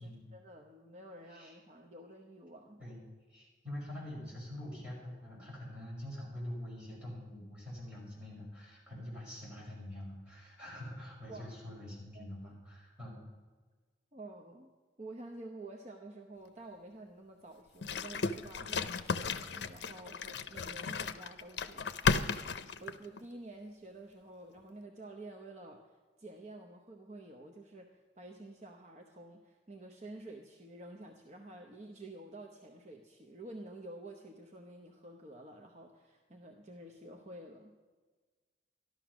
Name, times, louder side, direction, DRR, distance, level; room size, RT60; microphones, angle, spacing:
voice 1, 0.0-2.9 11.3-11.6 12.1-12.3 14.1-14.7 15.0-37.8, right 2 dB, 40° right, 2 dB, 0.9 m, -50 dB
voice 2, 3.3-13.2, left 1 dB, 5° right, -6 dB, 5.7 m, -45 dB
sound 1, 17.8-23.2, left 5 dB, 75° left, 0.6 m, -34 dB
13.0 x 12.0 x 6.1 m, 1.4 s
head